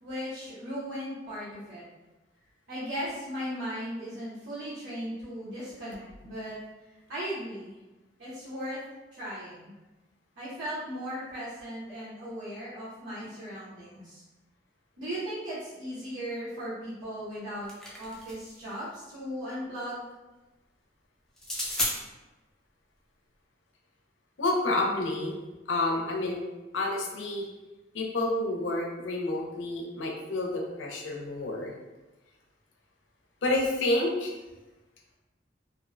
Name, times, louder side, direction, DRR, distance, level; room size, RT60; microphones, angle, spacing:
voice 1, 0.0-1.9 2.7-6.6 6.9-7.7 8.2-8.8 9.1-9.7 10.4-14.2 15.0-17.7 18.0-20.0, equal, 85° right, -11 dB, 0.8 m, -37 dB
sound 1, 17.3-18.6 21.4-21.9, equal, 5° left, 0.4 m, -33 dB
voice 2, 24.4-25.4 25.7-26.4 26.7-27.5 27.9-31.7 33.4-34.3, left 2 dB, 90° left, 1 dB, 0.5 m, -29 dB
2.5 x 2.0 x 2.4 m, 1.1 s
head